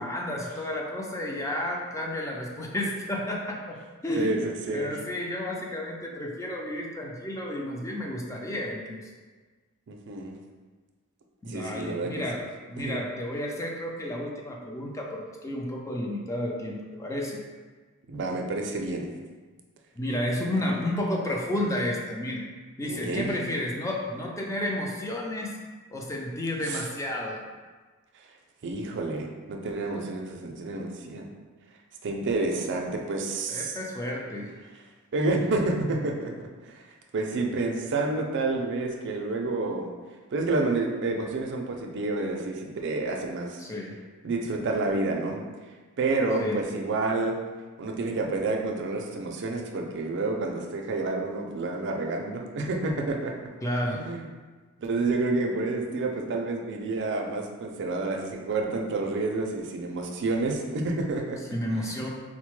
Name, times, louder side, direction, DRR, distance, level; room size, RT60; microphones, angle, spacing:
voice 1, 0.0-4.4 4.7-9.1 11.4-12.4 12.7-17.4 19.9-22.4 22.8-25.6 25.9-27.4 33.5-34.5 43.6-44.0 46.4-46.6 53.6-54.0 61.5-62.1, left 1 dB, 15° left, -1 dB, 0.4 m, -31 dB
voice 2, 4.2-5.0 9.9-10.4 11.4-12.2 12.8-13.0 18.1-19.2 22.8-23.3 26.7-26.8 28.6-31.3 32.0-33.7 35.1-36.8 37.1-39.9 40.3-43.6 44.2-45.4 46.0-47.4 47.8-53.3 53.9-54.2 54.8-61.4 61.7-61.8, right 3 dB, 55° right, 2 dB, 0.4 m, -29 dB
4.0 x 2.1 x 3.1 m, 1.4 s
head